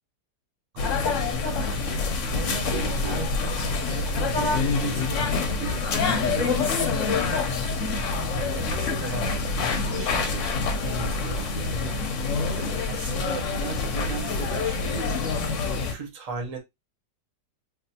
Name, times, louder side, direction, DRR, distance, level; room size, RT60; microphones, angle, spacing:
voice 1, 0.7-10.5 10.8-12.3 12.6-15.3 15.9-16.6, right 4 dB, 45° right, 0.5 m, -37 dB
sound 1, 0.8-15.9, left 4 dB, 60° left, 0.8 m, -26 dB
3.5 x 2.4 x 2.7 m
omnidirectional pair, 1.9 m